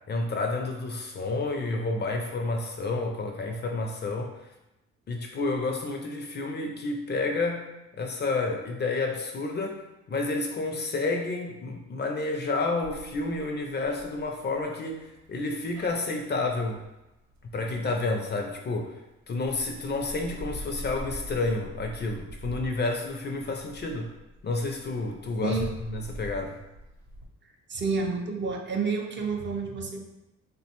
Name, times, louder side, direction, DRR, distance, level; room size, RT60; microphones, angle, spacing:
voice 1, 0.1-4.4 5.1-16.8 17.5-19.0 19.3-24.1 24.4-26.6, left 3 dB, 35° left, 2 dB, 0.4 m, -30 dB
sound 1, 12.8-18.8 19.3-27.3, equal, 70° right, 0.8 m, -44 dB
voice 2, 25.4-25.7 27.4-30.0, right 4 dB, 40° right, 2 dB, 0.5 m, -30 dB
3.3 x 2.1 x 2.9 m, 0.96 s
cardioid pair, 90°, 30 cm